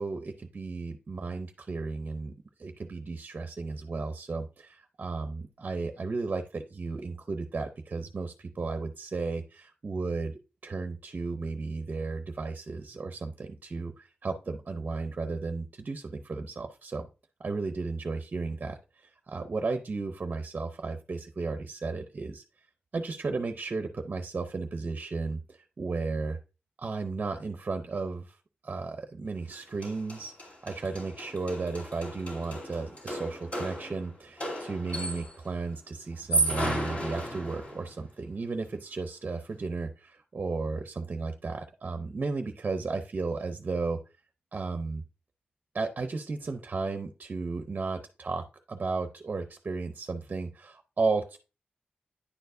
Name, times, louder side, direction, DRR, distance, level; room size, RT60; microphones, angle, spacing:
voice 1, 0.0-2.3 2.6-10.3 10.6-17.1 17.4-22.4 22.9-26.4 26.8-28.4 28.6-44.0 44.5-45.0 45.7-51.4, right 3 dB, 45° right, 7 dB, 0.6 m, -34 dB
sound 1, 29.5-29.6 29.8-35.5 36.1-37.9, right 2 dB, 40° left, 2.5 m, -34 dB
9.8 x 4.5 x 2.6 m, 0.31 s
wide cardioid pair, 120°, 3 cm